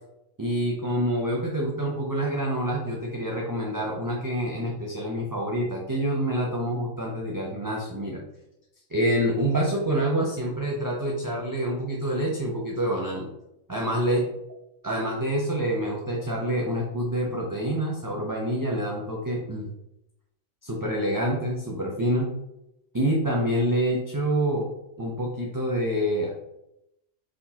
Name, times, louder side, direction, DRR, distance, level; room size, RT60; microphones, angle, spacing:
voice 1, 0.4-8.2 8.9-13.3 13.7-14.3 14.8-19.7 20.6-22.3 22.9-24.7 25.0-26.3, right 1 dB, 30° right, -3 dB, 0.4 m, -27 dB
4.4 x 3.7 x 2.8 m, 0.85 s
omnidirectional pair, 1.2 m